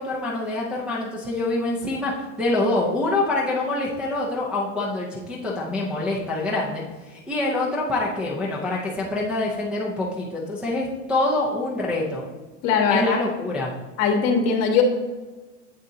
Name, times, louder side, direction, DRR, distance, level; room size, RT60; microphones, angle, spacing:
voice 1, 0.0-12.3 12.9-13.7, left 2 dB, 5° right, -7 dB, 0.5 m, -25 dB
voice 2, 12.6-13.2 14.0-14.8, left 6 dB, 45° left, 4 dB, 1.2 m, -20 dB
7.7 x 6.5 x 2.7 m, 1.3 s
supercardioid pair, 155°, 38 cm